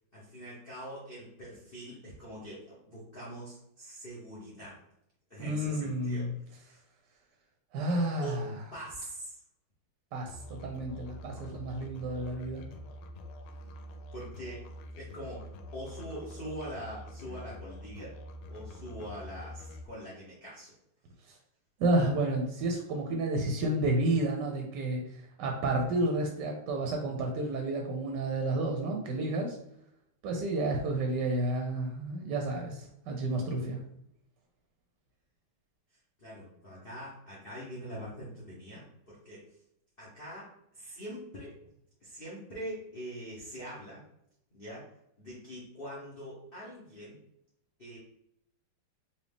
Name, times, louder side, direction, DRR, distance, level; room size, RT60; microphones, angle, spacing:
voice 1, 0.1-4.8 5.3-6.3 6.6-6.8 8.2-9.4 14.1-14.6 14.9-18.1 18.5-20.7 36.2-39.4 40.0-41.6 42.0-44.0 44.5-44.8 45.2-47.2 47.8-48.0, equal, 40° left, -7 dB, 0.8 m, -43 dB
voice 2, 5.4-6.3 7.7-8.6 10.1-12.7 21.8-29.6 30.2-33.8, right 2 dB, 70° right, 1 dB, 1.1 m, -31 dB
Musical instrument, 10.3-19.9, equal, 85° left, 1.4 m, -46 dB
4.1 x 2.7 x 3.4 m, 0.76 s
omnidirectional pair, 2.2 m